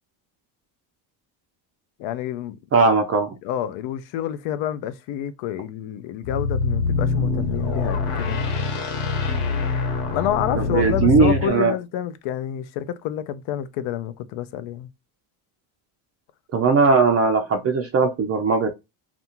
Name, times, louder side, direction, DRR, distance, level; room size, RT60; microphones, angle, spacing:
voice 1, 2.0-2.6 3.4-8.5 10.1-14.9, left 11 dB, 75° left, 0.6 m, -28 dB
voice 2, 2.7-3.4 10.5-11.8 16.5-18.7, right 4 dB, 35° right, 0.4 m, -19 dB
sound 1, 6.2-11.5, left 4 dB, 55° left, 1.0 m, -24 dB
2.5 x 2.3 x 2.8 m
cardioid pair, 105°, 48 cm